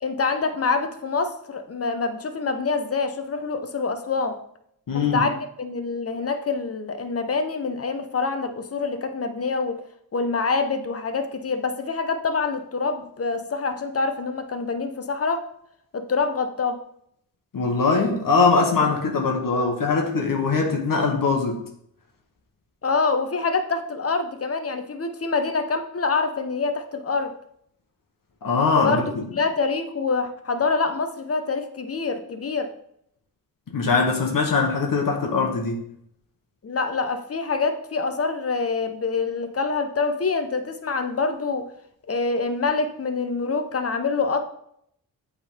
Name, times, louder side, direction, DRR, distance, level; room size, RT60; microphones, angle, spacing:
voice 1, 0.0-4.4 5.1-9.8 10.1-15.4 15.9-16.8 18.8-19.0 22.8-27.3 28.8-29.0 29.3-32.7 36.6-41.6 42.1-44.4, left 4 dB, 40° left, 0.8 m, -26 dB
voice 2, 4.9-5.3 17.5-21.6 28.4-29.1 33.7-35.8, left 4 dB, 65° left, 1.2 m, -21 dB
7.9 x 3.7 x 3.6 m
cardioid pair, 80°, 36 cm